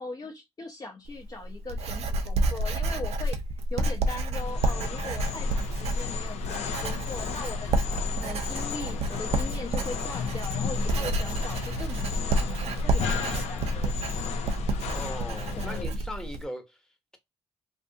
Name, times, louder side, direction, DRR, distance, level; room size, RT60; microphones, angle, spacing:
voice 1, 0.0-3.4 3.7-7.7 8.2-13.9 15.5-15.9, left 3 dB, 35° left, 0.7 m, -40 dB
Writing, 1.1-16.4, right 2 dB, 70° right, 0.5 m, -29 dB
sound 1, 4.4-15.8, left 7 dB, 75° left, 0.4 m, -34 dB
voice 2, 14.9-17.2, left 1 dB, 5° left, 0.9 m, -39 dB
2.6 x 2.4 x 2.6 m
supercardioid pair, 55°, 11 cm